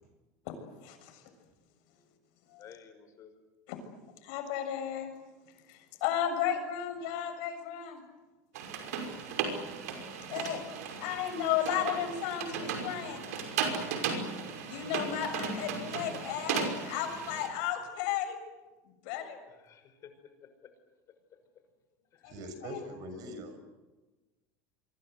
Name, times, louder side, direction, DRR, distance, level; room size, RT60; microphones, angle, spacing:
voice 1, 0.8-1.2 2.5-2.7 3.7-3.8 4.2-5.1 5.7-8.0 10.3-10.6 11.0-13.2 14.7-18.4 19.0-19.4 22.2-22.8, left 9 dB, 65° left, 6 dB, 6.8 m, -34 dB
voice 2, 2.6-3.3 11.0-11.2 14.2-14.5 19.6-20.1 22.1-22.4 22.9-23.4, left 8 dB, 40° left, 8 dB, 5.8 m, -54 dB
sound 1, 8.5-17.5, right 6 dB, 90° right, 5.7 m, -36 dB
voice 3, 22.3-23.6, equal, 50° right, 9 dB, 6.4 m, -42 dB
26.5 x 24.0 x 8.2 m, 1.2 s
supercardioid pair, 125°, 8 cm